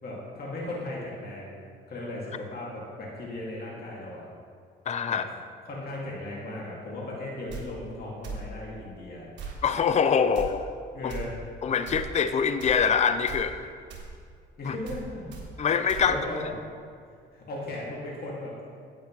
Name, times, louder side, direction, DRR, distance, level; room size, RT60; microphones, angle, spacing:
voice 1, 0.0-4.2 5.1-5.2 5.7-9.2 10.9-11.4 14.6-15.3 16.1-16.5 17.3-18.8, left 1 dB, 50° left, -4 dB, 2.3 m, -37 dB
voice 2, 4.9-5.2 9.6-10.6 11.0-11.1 11.6-13.7 14.7-14.8 15.6-16.2, left 6 dB, 35° left, 10 dB, 0.5 m, -24 dB
sound 1, 7.5-7.6 8.2-8.5 9.4-9.6 10.3-10.5 11.1-11.2 11.9-12.1 12.6-12.8 13.3-13.4 13.9-14.1 14.9-15.0 15.3-15.4 15.9-16.1, right 5 dB, 65° right, 1.6 m, -38 dB
9.6 x 8.4 x 3.2 m, 2.2 s
cardioid pair, 90°, 20 cm